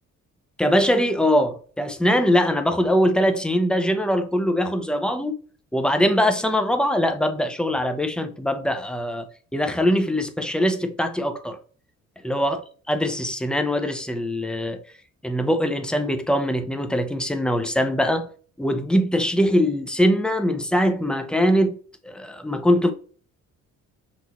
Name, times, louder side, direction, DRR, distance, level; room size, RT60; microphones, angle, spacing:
voice 1, 0.6-5.4 5.7-9.3 9.5-11.6 12.2-12.6 12.9-14.8 15.2-18.3 18.6-21.8 22.0-22.9, equal, 5° left, 0.6 m, -22 dB
6.0 x 2.7 x 2.9 m
cardioid pair, 90°, 30 cm